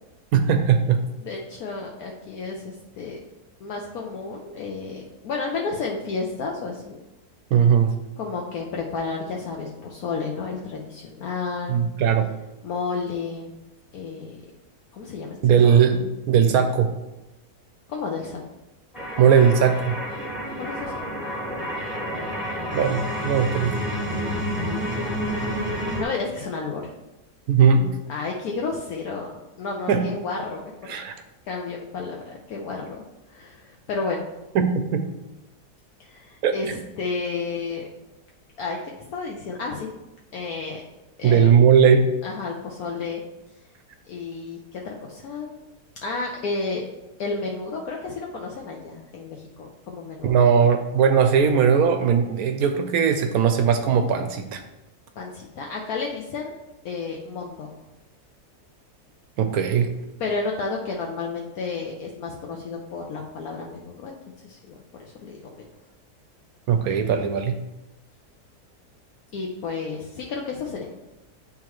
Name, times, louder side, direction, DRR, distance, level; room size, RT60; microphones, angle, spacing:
voice 1, 0.3-1.0 7.5-7.9 11.7-12.3 15.4-16.9 19.2-19.9 22.7-23.8 27.5-27.9 29.9-30.1 30.9-31.1 34.5-35.0 36.4-36.5 41.2-42.1 50.2-54.6 59.4-59.9 66.7-67.6, right 7 dB, 70° right, 7 dB, 1.0 m, -19 dB
voice 2, 1.2-3.2 3.6-7.0 8.2-11.8 12.6-13.5 13.9-14.4 14.9-15.8 17.9-18.4 20.6-20.9 25.5-25.6 26.0-26.9 28.1-31.0 31.5-33.0 33.3-34.2 36.0-37.9 38.6-38.8 39.1-39.9 40.3-40.8 41.2-41.5 42.2-43.2 44.1-45.5 46.0-46.8 47.2-50.5 55.2-56.5 56.8-57.8 60.2-64.1 64.4-64.7 65.2-65.4 69.3-70.9, left 4 dB, 70° left, -1 dB, 1.1 m, -31 dB
sound 1, 18.9-26.0, equal, ahead, 1.6 m, -29 dB
9.9 x 3.8 x 3.0 m, 0.96 s
omnidirectional pair, 1.7 m